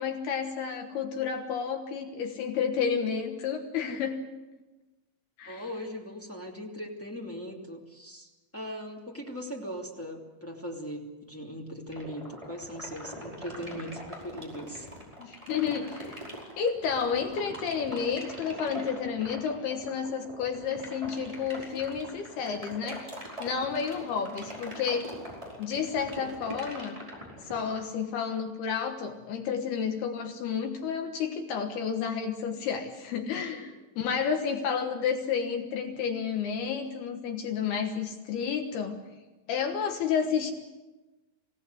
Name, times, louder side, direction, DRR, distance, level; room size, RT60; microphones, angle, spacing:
voice 1, 0.0-4.2 5.4-5.6 15.2-16.2 16.6-23.0 23.4-25.1 25.6-27.0 27.4-39.0 39.5-40.5, left 6 dB, 65° left, 4 dB, 2.9 m, -31 dB
voice 2, 5.5-14.9 23.6-23.7 26.6-26.9 33.5-33.6, equal, 10° left, -1 dB, 0.7 m, -40 dB
sound 1, 11.9-27.8, equal, 5° right, 4.6 m, -41 dB
26.0 x 17.0 x 8.1 m, 1.2 s
omnidirectional pair, 5.4 m